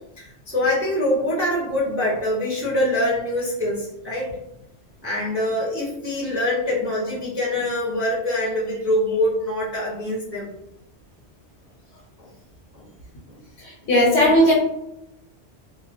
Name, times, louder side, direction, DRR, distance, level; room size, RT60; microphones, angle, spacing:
voice 1, 0.2-4.3 5.0-10.5 12.7-12.9, left 1 dB, 20° right, -7 dB, 0.4 m, -24 dB
voice 2, 13.9-14.5, equal, 80° left, -4 dB, 1.0 m, -15 dB
2.3 x 2.1 x 2.5 m, 0.84 s
omnidirectional pair, 1.2 m